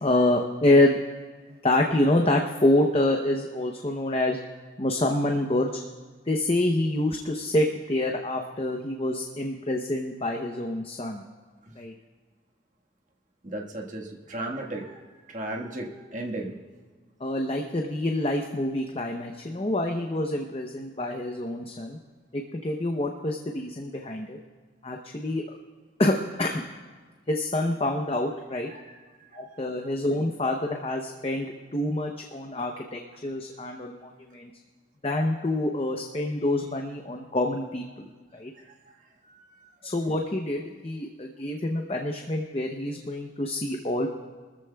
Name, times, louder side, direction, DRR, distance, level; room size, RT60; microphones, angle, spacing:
voice 1, 0.0-1.0 1.6-4.4 4.8-5.7 6.3-11.2 11.8-11.9 17.2-22.0 22.3-24.4 24.8-25.6 26.0-26.6 27.3-28.7 29.3-34.5 35.0-38.5 39.8-44.1, left 1 dB, 30° left, 2 dB, 0.7 m, -27 dB
voice 2, 13.4-15.0 15.3-16.5 28.7-29.6 38.6-38.7 39.2-39.7, right 1 dB, 40° right, -1 dB, 1.5 m, -36 dB
23.5 x 14.0 x 2.3 m, 1.4 s
head